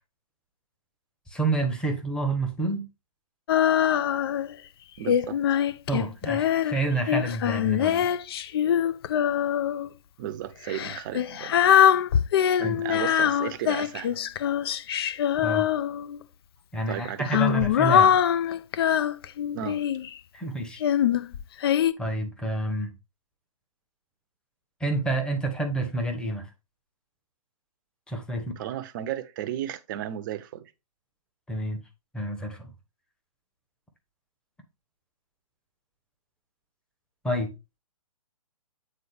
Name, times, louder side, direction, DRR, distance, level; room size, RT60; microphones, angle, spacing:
voice 1, 1.3-2.9 5.9-8.1 12.6-12.8 15.4-15.7 16.7-18.2 20.3-20.8 22.0-22.9 24.8-26.5 28.1-28.5 31.5-31.8 32.1-32.7 37.2-37.5, right 2 dB, 5° left, 1.0 m, -28 dB
Female singing, 3.5-4.5 5.1-9.9 10.7-16.2 17.0-20.1 20.8-21.9, left 10 dB, 40° left, 0.4 m, -23 dB
voice 2, 5.0-5.4 10.2-11.6 12.6-14.2 16.9-17.6 19.5-19.9 28.3-30.7, right 11 dB, 35° right, 0.7 m, -34 dB
8.5 x 3.8 x 3.5 m
figure-of-eight pair, 130°, 19 cm